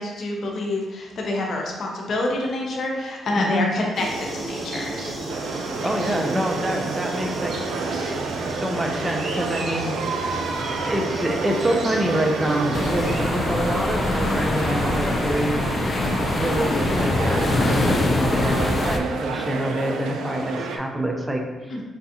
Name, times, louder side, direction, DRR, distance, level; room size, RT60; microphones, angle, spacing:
voice 1, 0.0-5.0 21.7-21.8, left 2 dB, 60° left, -1 dB, 0.7 m, -27 dB
voice 2, 3.3-3.8 5.8-7.6 8.4-10.6 10.8-15.6 16.3-21.8, right 1 dB, 15° right, 2 dB, 0.5 m, -26 dB
sound 1, 3.9-13.2, right 1 dB, 60° right, 0.9 m, -32 dB
sound 2, 5.3-20.8, right 4 dB, 80° right, 0.3 m, -30 dB
sound 3, 12.7-19.0, left 2 dB, 40° left, 0.4 m, -23 dB
5.2 x 2.3 x 2.7 m, 1.2 s
supercardioid pair, 60°, 0 cm